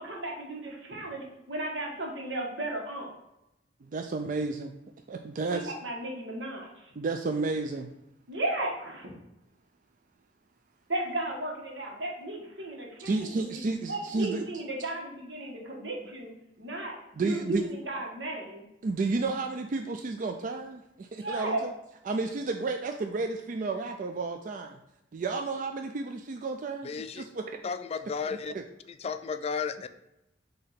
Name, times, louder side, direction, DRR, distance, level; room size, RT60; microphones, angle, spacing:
voice 1, 0.0-3.1 5.5-6.9 8.3-9.1 10.9-13.6 13.9-16.3 16.6-18.6 21.2-21.6, right 1 dB, 85° right, 0 dB, 1.6 m, -35 dB
voice 2, 3.8-4.8 5.1-5.7 7.0-7.9 13.0-14.5 17.2-17.6 18.8-21.7 22.0-24.8 25.1-27.6 28.3-28.6, right 3 dB, 45° right, 5 dB, 0.4 m, -32 dB
voice 3, 26.8-27.2 27.6-28.5 29.0-29.9, left 5 dB, 35° left, 11 dB, 0.3 m, -33 dB
6.5 x 2.8 x 5.8 m, 0.87 s
head